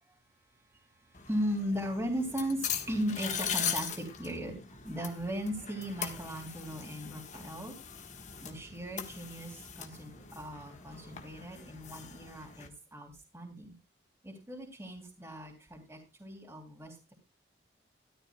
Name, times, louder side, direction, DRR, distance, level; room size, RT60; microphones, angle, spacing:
sound 1, 1.1-12.7, left 8 dB, 40° left, 1.6 m, -40 dB
voice 1, 1.2-7.7 8.4-13.7 14.2-17.1, equal, 15° right, 0 dB, 3.1 m, -37 dB
13.5 x 13.0 x 2.4 m, 0.27 s
head